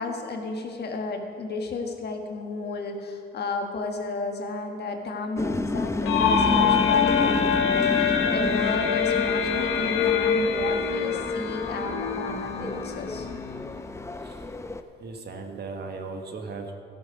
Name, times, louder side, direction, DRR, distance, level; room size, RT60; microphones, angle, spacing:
voice 1, 0.0-13.3, left 3 dB, 55° left, 3 dB, 1.4 m, -33 dB
sound 1, 5.4-14.8, left 2 dB, 15° left, 0.6 m, -30 dB
sound 2, 6.1-13.7, left 7 dB, 90° left, 0.9 m, -25 dB
voice 2, 15.0-16.7, right 4 dB, 55° right, 4 dB, 1.4 m, -37 dB
13.5 x 7.8 x 5.3 m, 2.5 s
cardioid pair, 90°, 20 cm